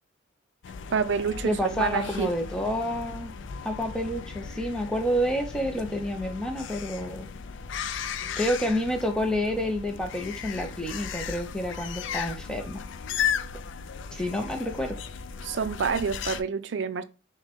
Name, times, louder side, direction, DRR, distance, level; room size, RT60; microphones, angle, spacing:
sound 1, 0.6-16.4, left 7 dB, 65° left, 0.4 m, -36 dB
voice 1, 0.9-2.3 15.4-17.0, right 6 dB, 60° right, 0.4 m, -28 dB
voice 2, 1.4-3.3 3.6-7.3 8.4-12.8 14.1-14.9, equal, 5° left, 0.6 m, -29 dB
6.1 x 2.2 x 3.5 m
head